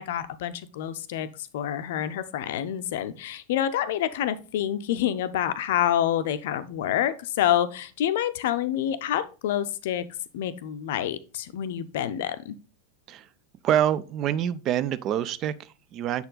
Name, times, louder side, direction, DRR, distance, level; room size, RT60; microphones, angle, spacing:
voice 1, 0.0-10.0 10.3-12.6, left 11 dB, 55° left, 0.5 m, -27 dB
voice 2, 13.6-16.2, right 10 dB, 35° right, 0.4 m, -26 dB
6.9 x 4.3 x 3.9 m
figure-of-eight pair, 90°, 0 cm